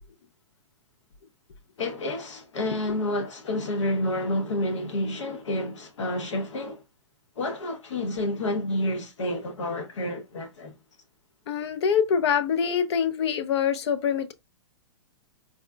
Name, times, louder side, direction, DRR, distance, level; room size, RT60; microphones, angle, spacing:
voice 1, 1.8-6.8 7.4-10.8, left 1 dB, 80° left, 0.9 m, -29 dB
voice 2, 11.5-14.3, left 7 dB, 65° left, 0.5 m, -24 dB
4.1 x 2.1 x 2.3 m
hypercardioid pair, 125°, 15 cm